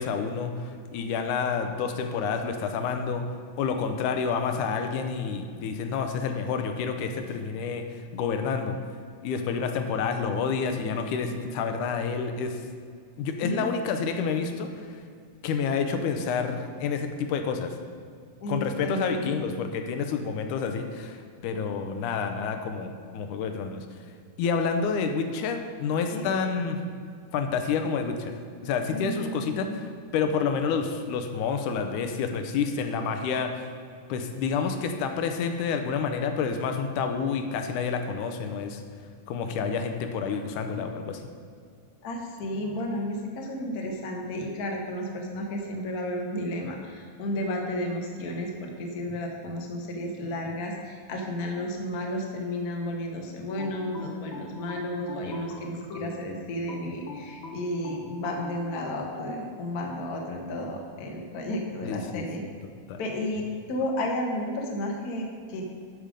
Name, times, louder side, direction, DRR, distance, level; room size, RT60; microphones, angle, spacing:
voice 1, 0.0-3.2 3.6-8.8 9.2-12.6 13.2-15.0 15.4-17.7 18.5-23.9 24.4-26.8 27.3-29.7 30.1-33.6 34.1-38.8 39.3-41.2 61.8-62.2 62.9-63.0, left 5 dB, 85° left, 6 dB, 2.1 m, -29 dB
voice 2, 18.4-19.3 26.1-26.3 28.9-29.8 42.0-62.4 63.0-65.6, left 1 dB, 70° left, 1 dB, 0.9 m, -32 dB
sound 1, 53.6-56.2 56.7-59.4, left 3 dB, 55° left, 1.6 m, -40 dB
12.0 x 5.2 x 5.1 m, 2.1 s
omnidirectional pair, 3.6 m